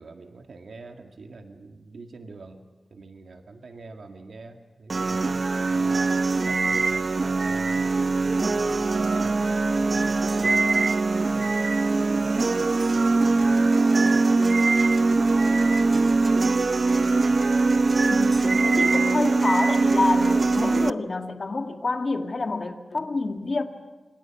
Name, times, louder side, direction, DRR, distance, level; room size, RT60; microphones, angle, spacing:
voice 1, 0.0-2.6 2.9-6.1 6.4-10.6 11.1-14.2, right 3 dB, 75° right, 5 dB, 2.0 m, -44 dB
sound 1, 4.9-20.9, right 3 dB, 50° right, 0.7 m, -22 dB
voice 2, 18.0-23.6, left 3 dB, 50° left, 5 dB, 2.2 m, -28 dB
28.0 x 26.0 x 6.0 m, 1.3 s
wide cardioid pair, 120°, 0 cm